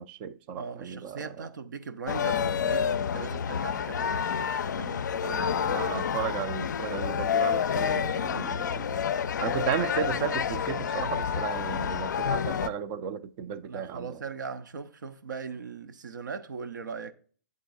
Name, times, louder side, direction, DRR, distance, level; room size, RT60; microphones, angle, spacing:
voice 1, 0.0-1.5 5.3-9.0 9.4-14.2, right 8 dB, 30° right, 0.4 m, -34 dB
voice 2, 0.6-5.7 13.6-17.1, right 5 dB, 75° right, 0.6 m, -40 dB
sound 1, 2.1-12.7, left 7 dB, 70° left, 0.4 m, -29 dB
8.0 x 3.7 x 3.8 m
hypercardioid pair, 125°, 10 cm